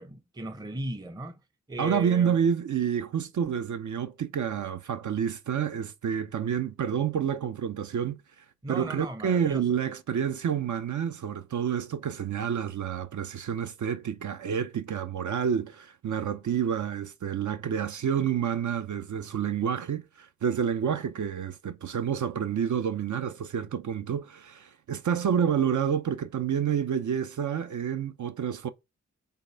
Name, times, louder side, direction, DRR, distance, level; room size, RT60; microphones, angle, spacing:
voice 1, 0.0-1.4 1.7-2.4 8.6-9.8, right 2 dB, 15° right, 0.6 m, -37 dB
voice 2, 1.8-8.2 8.7-28.7, right 8 dB, 80° right, 0.7 m, -29 dB
5.6 x 4.2 x 5.6 m
wide cardioid pair, 120°, 30 cm